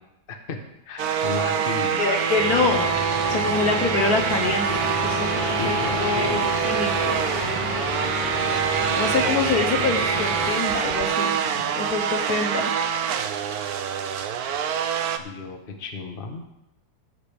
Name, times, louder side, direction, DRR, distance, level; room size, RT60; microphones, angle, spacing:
voice 1, 0.3-0.6 0.9-2.0 5.6-6.4 8.6-9.3 15.2-16.4, left 4 dB, 35° left, 3 dB, 1.3 m, -34 dB
sound 1, 1.0-15.2, right 7 dB, 65° right, 1.1 m, -25 dB
voice 2, 2.0-2.9 3.3-4.7 5.0-7.2 9.0-11.4 11.7-12.7, left 4 dB, 60° left, 2 dB, 1.4 m, -25 dB
sound 2, 2.4-10.5, equal, 25° right, 3.2 m, -30 dB
sound 3, 3.4-11.9, right 2 dB, 40° right, 2.3 m, -37 dB
16.5 x 8.0 x 3.5 m, 0.87 s
omnidirectional pair, 1.9 m